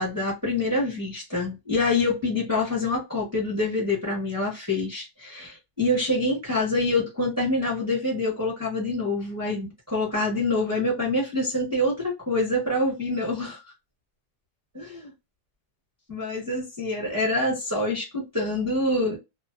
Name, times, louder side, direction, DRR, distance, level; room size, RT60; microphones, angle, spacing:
voice 1, 0.0-13.6 14.7-15.1 16.1-19.2, left 2 dB, 10° right, 0.9 m, -26 dB
2.9 x 2.0 x 2.4 m
omnidirectional pair, 1.9 m